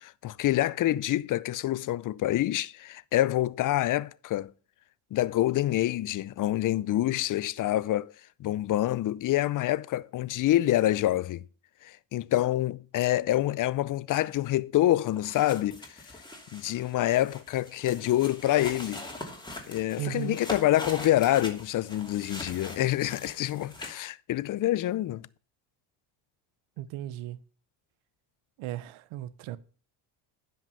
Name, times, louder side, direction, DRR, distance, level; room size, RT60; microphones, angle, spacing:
voice 1, 0.0-4.5 5.1-8.1 8.4-11.4 11.8-16.0 16.5-19.1 19.7-25.3, left 14 dB, 40° left, 0.5 m, -27 dB
sound 1, 15.0-24.1, left 2 dB, 10° left, 2.6 m, -42 dB
voice 2, 20.0-20.4 26.8-27.4 28.6-29.6, right 12 dB, 75° right, 0.9 m, -36 dB
10.0 x 5.9 x 5.5 m
supercardioid pair, 90°, 50 cm